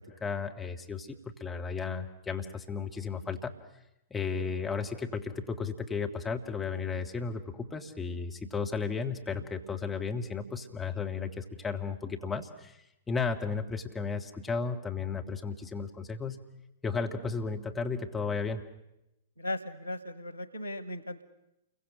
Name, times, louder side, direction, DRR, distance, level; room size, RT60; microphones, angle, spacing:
voice 1, 0.0-3.5 4.1-16.4 16.8-18.6, left 5 dB, 10° left, 2 dB, 2.2 m, -34 dB
voice 2, 19.4-21.2, left 1 dB, 85° right, 15 dB, 1.1 m, -37 dB
28.5 x 23.0 x 6.5 m, 0.88 s
figure-of-eight pair, 105°, 0 cm